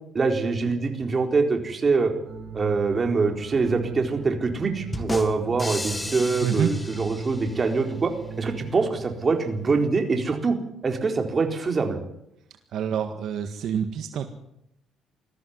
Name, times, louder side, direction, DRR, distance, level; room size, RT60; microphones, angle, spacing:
voice 1, 0.1-2.1 2.5-10.6 10.8-12.0, right 4 dB, 30° right, 4 dB, 4.1 m, -24 dB
sound 1, 2.2-8.9, right 4 dB, 45° right, 6.3 m, -37 dB
sound 2, 4.9-7.7, left 2 dB, 15° left, 2.0 m, -34 dB
voice 2, 12.7-14.3, right 8 dB, 65° right, 7 dB, 1.7 m, -27 dB
20.5 x 14.5 x 9.6 m, 0.79 s
cardioid pair, 120°, 0 cm